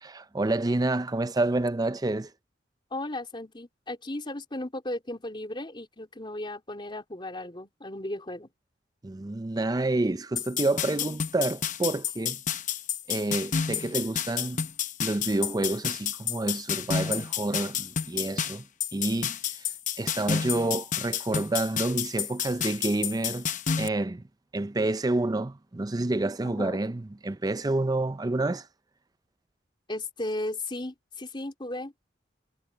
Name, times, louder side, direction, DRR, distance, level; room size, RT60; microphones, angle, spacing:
voice 1, 0.0-2.3 9.0-12.4 13.1-14.7 15.0-18.6 18.9-19.7 20.0-23.5 23.8-24.2 24.5-28.7, right 2 dB, 20° right, 0.5 m, -28 dB
voice 2, 2.9-8.5 11.0-11.2 26.4-26.8 29.9-31.9, left 1 dB, 25° left, 3.7 m, -35 dB
sound 1, 10.4-23.9, left 8 dB, 45° left, 0.8 m, -30 dB
head